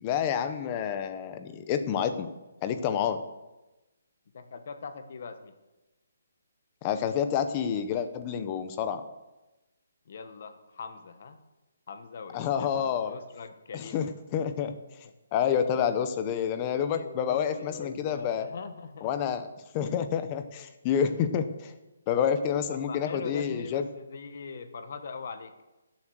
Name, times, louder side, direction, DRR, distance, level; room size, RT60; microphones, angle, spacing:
voice 1, 0.0-2.3 2.6-3.2 6.8-9.0 12.3-13.1 13.7-14.7 15.3-18.5 19.0-19.5 19.7-21.7 22.1-23.8, left 8 dB, 20° left, 9 dB, 0.7 m, -28 dB
voice 2, 4.3-5.5 10.1-11.4 11.9-14.1 16.9-19.1 22.7-25.5, left 5 dB, 40° left, 8 dB, 1.2 m, -41 dB
16.0 x 7.3 x 6.3 m, 1.0 s
hypercardioid pair, 175°, 0 cm